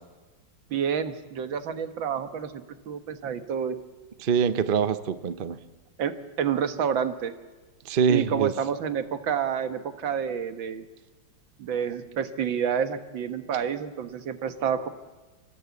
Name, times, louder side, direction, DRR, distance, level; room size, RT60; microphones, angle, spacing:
voice 1, 0.7-3.8 6.0-7.3 8.1-10.9 11.6-14.9, right 7 dB, 80° right, 9 dB, 2.0 m, -29 dB
voice 2, 4.2-5.6 7.8-8.5, right 7 dB, 45° right, 12 dB, 0.7 m, -24 dB
25.5 x 18.0 x 8.3 m, 1.2 s
omnidirectional pair, 2.1 m